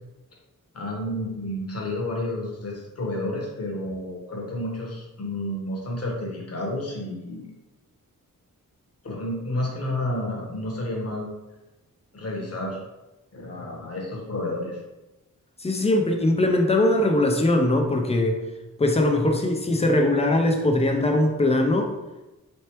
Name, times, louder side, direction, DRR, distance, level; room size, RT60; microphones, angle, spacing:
voice 1, 0.7-7.5 9.0-11.3 12.1-12.8 13.3-14.8, left 1 dB, 45° left, -2 dB, 1.1 m, -30 dB
voice 2, 15.6-18.4 18.8-21.9, left 1 dB, 20° left, 3 dB, 0.5 m, -21 dB
4.2 x 3.3 x 2.9 m, 1.0 s
wide cardioid pair, 120°, 34 cm